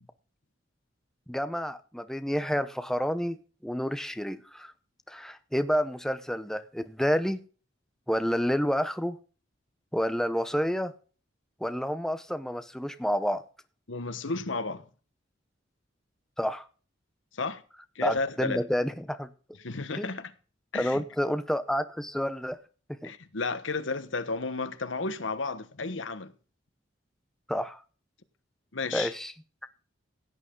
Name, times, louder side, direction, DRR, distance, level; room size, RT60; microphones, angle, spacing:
voice 1, 1.3-3.4 3.6-4.7 5.1-7.4 8.1-9.2 9.9-10.9 11.6-13.4 16.4-16.6 18.0-19.3 20.0-20.1 20.7-22.6 23.0-23.1 27.5-27.8 28.9-29.3, equal, 5° left, 0.8 m, -29 dB
voice 2, 13.9-14.8 17.3-17.6 17.9-18.6 19.6-20.3 20.7-21.0 23.0-26.3 28.7-29.1, left 3 dB, 85° left, 1.2 m, -32 dB
16.5 x 9.0 x 3.8 m
head